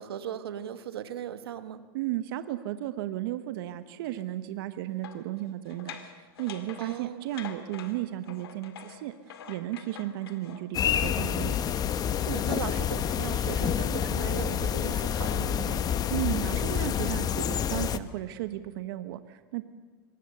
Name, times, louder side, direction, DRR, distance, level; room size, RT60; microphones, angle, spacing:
voice 1, 0.0-1.9 6.8-7.3 12.3-15.8, right 10 dB, 90° right, 11 dB, 1.2 m, -38 dB
voice 2, 1.9-11.5 16.1-19.6, right 14 dB, 70° right, 11 dB, 1.0 m, -34 dB
sound 1, 4.0-4.3 5.0-11.0 12.3-13.8 14.2-18.5, left 8 dB, 85° left, 2.3 m, -48 dB
sound 2, 10.7-18.0, left 9 dB, 30° left, 0.8 m, -28 dB
23.5 x 20.0 x 6.7 m, 1.5 s
hypercardioid pair, 115°, 12 cm